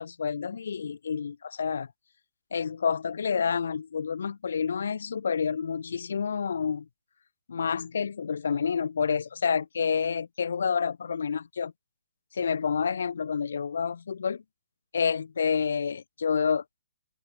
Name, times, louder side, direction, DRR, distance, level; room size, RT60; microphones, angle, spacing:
voice 1, 0.0-1.9 2.5-6.9 7.5-11.7 12.3-14.4 14.9-16.8, left 6 dB, 65° left, 6.5 m, -29 dB
hypercardioid pair, 160°, 0 cm